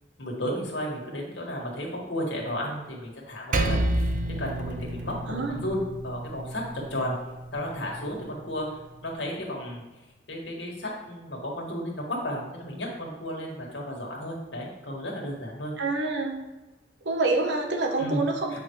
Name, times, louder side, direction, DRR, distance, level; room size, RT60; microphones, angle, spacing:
voice 1, 0.2-4.1 4.4-7.1 7.5-9.8 10.3-15.7 18.0-18.2 18.5-18.6, equal, 80° left, -1 dB, 2.0 m, -33 dB
Percussion, 3.5-8.3, right 1 dB, 45° right, 0.6 m, -30 dB
voice 2, 5.3-5.6 15.8-16.4 17.0-18.6, right 3 dB, 75° right, 4 dB, 1.0 m, -27 dB
8.4 x 5.9 x 3.2 m, 1.1 s
head